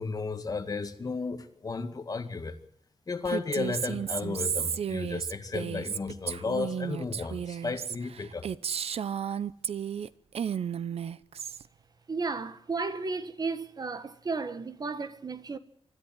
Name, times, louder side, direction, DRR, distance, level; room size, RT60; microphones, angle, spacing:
voice 1, 0.0-2.6 3.1-8.4, left 4 dB, 35° left, 2.0 m, -34 dB
Female speech woman speaking, 3.2-10.1 10.3-11.6, right 8 dB, 70° right, 0.8 m, -33 dB
voice 2, 12.1-15.6, right 4 dB, 40° right, 1.3 m, -33 dB
25.5 x 13.5 x 9.0 m
wide cardioid pair, 145°, 11 cm